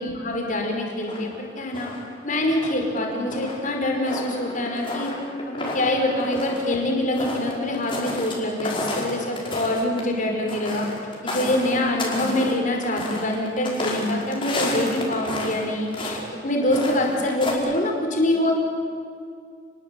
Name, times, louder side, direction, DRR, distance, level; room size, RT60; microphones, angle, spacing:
voice 1, 0.0-1.9 2.2-5.1 5.5-10.9 11.2-18.6, left 1 dB, 45° left, 1 dB, 5.3 m, -25 dB
sound 1, 1.1-2.1 2.5-8.3 8.6-15.6 15.9-16.2 16.6-17.5, left 2 dB, 30° left, 5.2 m, -31 dB
29.5 x 21.0 x 8.6 m, 2.2 s
head